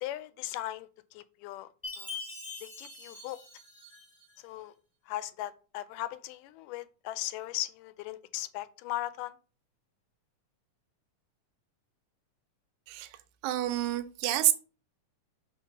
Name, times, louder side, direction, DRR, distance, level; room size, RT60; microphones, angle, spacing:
voice 1, 0.0-1.7 2.0-2.2 2.6-3.4 4.4-4.7 5.1-9.3, left 15 dB, 85° left, 2.1 m, -38 dB
Chime, 1.8-4.3, left 3 dB, 10° left, 1.3 m, -43 dB
voice 2, 12.9-13.2 13.4-14.5, right 14 dB, 75° right, 1.9 m, -28 dB
4.5 x 4.3 x 5.8 m
omnidirectional pair, 3.7 m